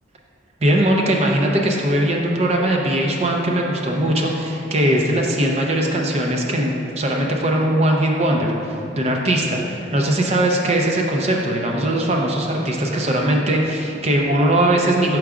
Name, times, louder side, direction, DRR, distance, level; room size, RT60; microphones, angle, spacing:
voice 1, 0.6-8.5 9.0-15.2, right 1 dB, 35° right, 0 dB, 0.5 m, -20 dB
5.9 x 4.6 x 3.7 m, 2.8 s
head